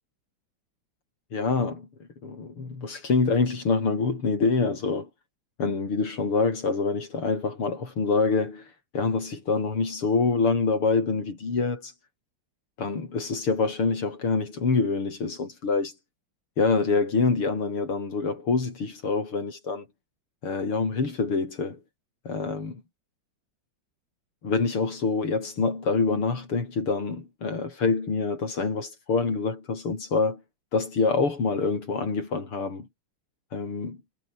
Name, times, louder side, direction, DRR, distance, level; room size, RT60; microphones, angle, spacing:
voice 1, 1.3-1.9 2.2-5.1 5.6-8.7 8.9-11.9 12.8-15.9 16.6-19.9 20.4-21.8 22.3-22.8 24.4-30.4 30.7-32.9 33.5-34.0, left 4 dB, 80° left, 5.3 m, -26 dB
omnidirectional pair, 2.4 m